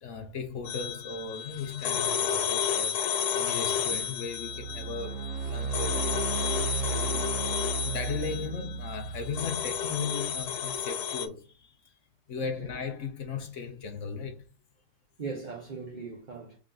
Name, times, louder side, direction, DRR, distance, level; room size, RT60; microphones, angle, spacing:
voice 1, 0.0-3.0 3.4-6.3 7.8-11.9 12.3-14.4, left 5 dB, 60° left, 1.0 m, -37 dB
sound 1, 0.7-11.3, left 8 dB, 90° left, 1.1 m, -32 dB
sound 2, 4.3-10.5, right 5 dB, 65° right, 0.9 m, -35 dB
voice 2, 6.9-7.3 12.6-12.7 15.2-16.6, right 4 dB, 40° right, 0.8 m, -39 dB
3.8 x 3.6 x 3.8 m
omnidirectional pair, 1.6 m